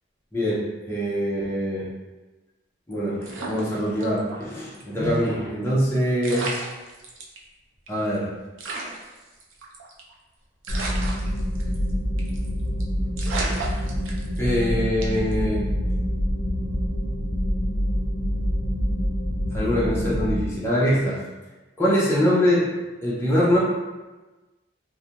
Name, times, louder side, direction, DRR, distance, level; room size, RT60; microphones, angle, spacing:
voice 1, 0.3-1.9 2.9-6.6 7.9-8.3 14.4-15.6 19.5-21.2 21.8-22.7 23.0-23.6, equal, 10° left, -8 dB, 0.5 m, -23 dB
sound 1, 3.2-4.4 4.7-4.8 5.9-6.0 6.2-7.4 7.9-8.0 8.1-8.2 8.6-10.1 10.6-11.9 12.2-12.5 12.8-12.9 13.2-14.5 15.0-15.3, right 3 dB, 75° right, 0.5 m, -33 dB
sound 2, 10.7-20.4, equal, 75° left, 0.6 m, -26 dB
2.4 x 2.1 x 2.8 m, 1.2 s
head